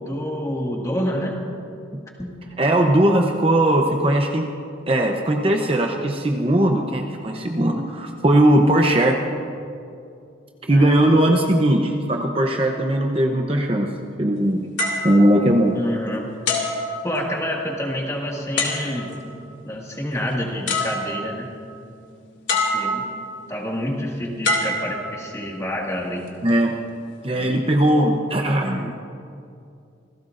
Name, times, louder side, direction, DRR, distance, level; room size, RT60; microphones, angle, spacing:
voice 1, 0.1-1.4 2.2-2.4 10.7-11.2 15.7-16.2 17.0-19.1 19.7-21.5 22.6-23.0 23.5-26.2 27.3-27.6, equal, 15° left, -1 dB, 1.9 m, -28 dB
voice 2, 2.6-4.5 4.9-9.2 10.7-14.7 15.0-15.8 26.4-26.8 27.2-28.9, right 1 dB, 30° right, 2 dB, 0.8 m, -19 dB
sound 1, 14.8-16.0 16.5-17.6 18.6-19.3 20.3-20.4 20.7-21.5 22.5-23.3 24.4-25.6 26.3-26.5, left 2 dB, 75° left, 2.5 m, -26 dB
27.0 x 17.0 x 2.6 m, 2.5 s
head